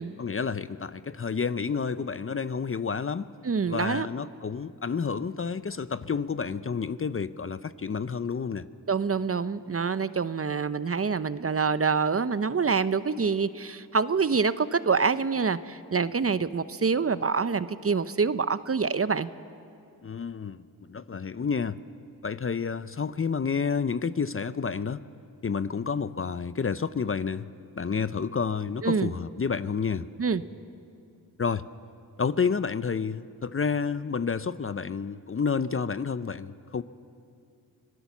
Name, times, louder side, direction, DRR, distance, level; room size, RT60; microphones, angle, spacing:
voice 1, 0.2-3.3 3.7-8.7 20.0-21.8 22.2-25.0 25.4-27.5 27.8-30.1 31.4-31.7 32.2-36.8, left 5 dB, 35° left, 15 dB, 0.6 m, -30 dB
voice 2, 3.4-4.1 8.9-19.3 28.8-29.1 30.2-30.4, right 5 dB, 35° right, 14 dB, 0.7 m, -26 dB
25.5 x 17.5 x 7.2 m, 2.5 s
cardioid pair, 50°, 40 cm